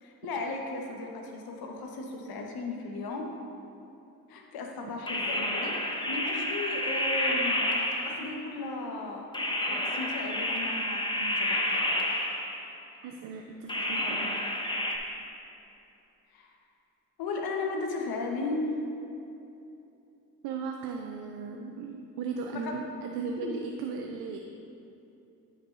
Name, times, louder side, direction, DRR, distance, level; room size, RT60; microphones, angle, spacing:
voice 1, 0.0-3.3 4.3-7.7 8.0-9.3 9.6-11.8 16.3-16.5 17.2-18.7 22.6-22.8 23.4-23.5, left 3 dB, 75° left, 1 dB, 1.1 m, -36 dB
sound 1, 5.1-8.5 9.3-12.7 13.7-15.0, left 1 dB, 15° left, 0.9 m, -30 dB
voice 2, 5.1-5.6 13.0-14.4 14.8-15.0 20.4-24.4, right 5 dB, 80° right, 3 dB, 0.5 m, -37 dB
9.5 x 6.5 x 2.5 m, 2.8 s
supercardioid pair, 60°, 37 cm